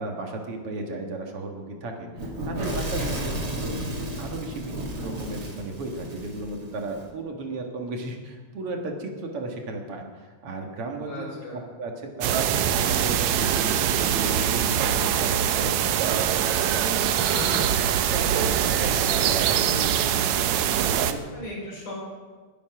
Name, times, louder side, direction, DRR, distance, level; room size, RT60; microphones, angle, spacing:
voice 1, 0.0-3.0 3.6-11.3 11.5-17.4 18.1-20.3 20.7-21.2, right 2 dB, 50° right, 2 dB, 2.4 m, -35 dB
Fire / Explosion, 2.2-7.0, right 1 dB, 35° right, 2.9 m, -33 dB
voice 2, 2.9-3.3 11.0-11.6 17.3-17.7 21.3-21.9, left 1 dB, 85° left, -3 dB, 6.3 m, -36 dB
sound 1, 12.2-21.1, right 9 dB, 75° right, 2.0 m, -23 dB
21.0 x 8.5 x 6.0 m, 1.4 s
omnidirectional pair, 3.5 m